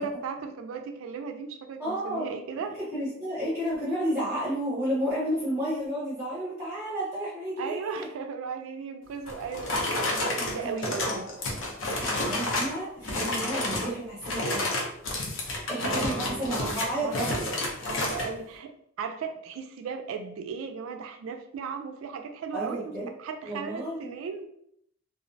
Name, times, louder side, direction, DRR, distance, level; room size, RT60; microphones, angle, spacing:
voice 1, 0.0-2.8 7.6-11.2 15.4-17.6 17.9-18.7 19.0-24.5, right 5 dB, 85° right, 6 dB, 0.3 m, -36 dB
voice 2, 1.8-2.3 2.9-8.1 10.4-10.7 11.1-11.2 11.9-14.6 15.7-17.5 22.5-23.1 23.4-23.9, equal, 15° right, -9 dB, 0.6 m, -31 dB
sound 1, 9.3-12.8 13.0-13.9 14.2-18.3, left 2 dB, 70° left, 0.6 m, -30 dB
2.4 x 2.0 x 2.5 m, 0.71 s
head